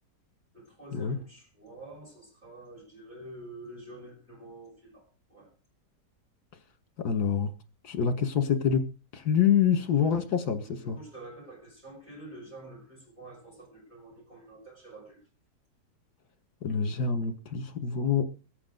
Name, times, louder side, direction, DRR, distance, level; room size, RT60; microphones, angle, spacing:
voice 1, 0.5-5.5 10.6-15.2 16.7-16.8, right 2 dB, 25° right, 6.1 m, -48 dB
voice 2, 7.0-7.5 7.8-8.9 9.1-11.0 16.6-18.3, left 7 dB, 70° left, 2.1 m, -26 dB
23.5 x 8.4 x 3.9 m
omnidirectional pair, 1.8 m